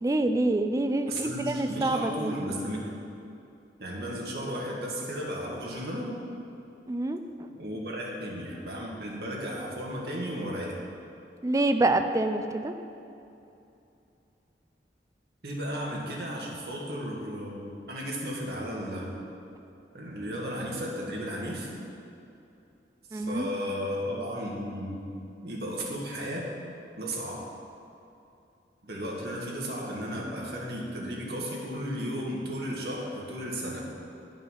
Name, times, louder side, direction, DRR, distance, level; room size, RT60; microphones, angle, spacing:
voice 1, 0.0-2.3 6.9-7.2 11.4-12.7 23.1-23.5, right 2 dB, 20° right, 7 dB, 0.3 m, -26 dB
voice 2, 1.1-3.0 3.8-6.1 7.6-10.8 15.4-19.2 19.9-21.7 23.1-25.1 25.4-26.5 27.0-27.5 28.8-33.9, equal, 65° right, -3 dB, 1.6 m, -34 dB
9.6 x 5.6 x 5.5 m, 2.8 s
head